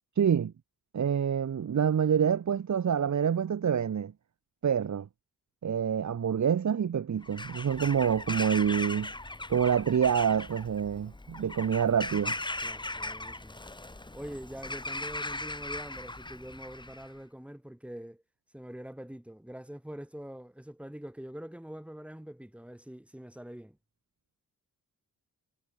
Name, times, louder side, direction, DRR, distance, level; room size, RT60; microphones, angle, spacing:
voice 1, 0.1-0.5 0.9-4.1 4.6-5.1 5.6-9.1 9.5-12.3, right 8 dB, 50° right, 1.4 m, -27 dB
Bird vocalization bird call bird song / Crow, 7.2-17.1, left 2 dB, 15° left, 1.7 m, -39 dB
voice 2, 12.6-13.6 14.1-18.2 18.5-23.8, equal, 5° right, 7.6 m, -44 dB
wide cardioid pair, 120°, 35 cm